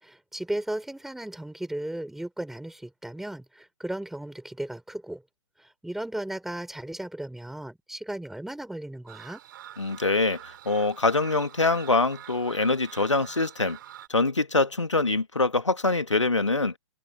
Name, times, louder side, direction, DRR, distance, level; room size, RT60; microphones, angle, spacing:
voice 1, 0.0-5.2 5.6-9.4, right 1 dB, ahead, 5.0 m, -35 dB
sound 1, 9.1-14.1, right 12 dB, 45° right, 6.8 m, -46 dB
voice 2, 9.8-13.8 14.1-16.7, left 3 dB, 80° left, 1.9 m, -24 dB
figure-of-eight pair, 120°, 15 cm